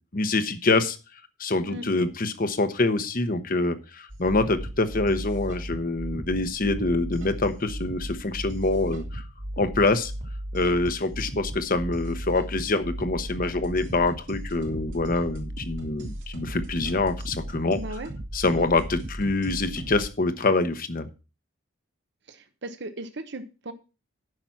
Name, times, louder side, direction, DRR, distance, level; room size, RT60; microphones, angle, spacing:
voice 1, 0.1-1.0 1.4-9.2 9.6-10.1 10.5-17.8 18.3-21.1, left 2 dB, 45° left, 10 dB, 1.1 m, -25 dB
sound 1, 4.1-20.1, right 1 dB, 80° right, 3.1 m, -36 dB
voice 2, 17.7-18.1 22.3-23.7, right 1 dB, 65° right, 8 dB, 1.0 m, -37 dB
9.7 x 6.1 x 5.9 m, 0.32 s
head